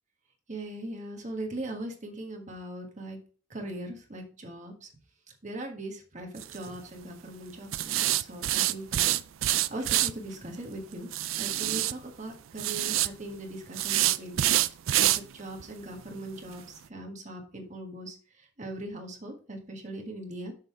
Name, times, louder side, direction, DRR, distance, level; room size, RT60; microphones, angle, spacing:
voice 1, 0.5-3.2 3.5-4.9 5.4-9.2 9.7-14.4 14.9-16.6 16.9-18.2 18.6-20.5, right 1 dB, 35° right, 2 dB, 1.5 m, -40 dB
sound 1, 6.4-6.6 7.7-10.1 11.1-11.9 12.6-13.1 13.7-15.2 15.6-15.7 16.1-16.2 16.6-16.7, right 14 dB, 80° right, 0.4 m, -26 dB
6.6 x 5.5 x 4.7 m, 0.40 s
head